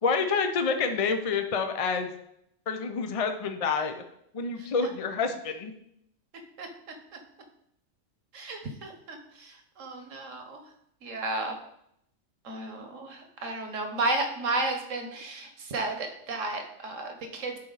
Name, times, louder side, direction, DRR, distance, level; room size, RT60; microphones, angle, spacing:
voice 1, 0.0-2.1 2.7-3.9 4.3-5.7, left 5 dB, 40° left, 6 dB, 0.6 m, -28 dB
voice 2, 6.6-6.9 8.3-10.6 11.0-11.6 12.4-17.6, right 2 dB, 75° right, 5 dB, 1.5 m, -33 dB
10.5 x 4.2 x 4.0 m, 0.75 s
omnidirectional pair, 1.3 m